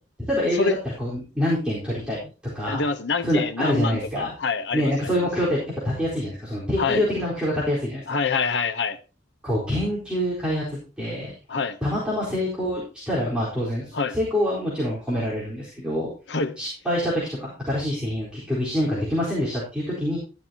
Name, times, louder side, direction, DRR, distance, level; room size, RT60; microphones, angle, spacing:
voice 1, 0.3-2.2 2.5-2.8 3.2-4.3 4.7-8.0 9.4-11.3 11.8-16.1 16.6-20.2, equal, 5° right, 4.3 m, -26 dB
voice 2, 2.7-5.3 6.8-7.0 8.1-9.0 11.5-11.8 13.9-14.2 16.3-16.6, left 4 dB, 70° left, 0.9 m, -26 dB
12.5 x 11.5 x 2.9 m
head